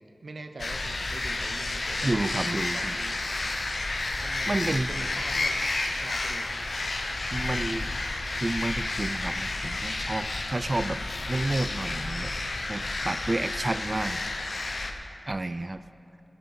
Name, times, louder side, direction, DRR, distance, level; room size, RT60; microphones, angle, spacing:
voice 1, 0.0-2.2 2.7-3.2 4.2-5.6 6.0-6.7, right 2 dB, 75° right, 6 dB, 0.9 m, -43 dB
sound 1, 0.6-14.9, left 2 dB, 70° left, 1.0 m, -31 dB
voice 2, 2.0-3.0 4.5-4.9 7.3-7.9 8.4-11.0 11.3-12.3 12.7-14.2 15.3-15.8, right 2 dB, 40° right, 12 dB, 0.3 m, -30 dB
20.0 x 7.5 x 5.6 m, 2.9 s
wide cardioid pair, 50°, 0 cm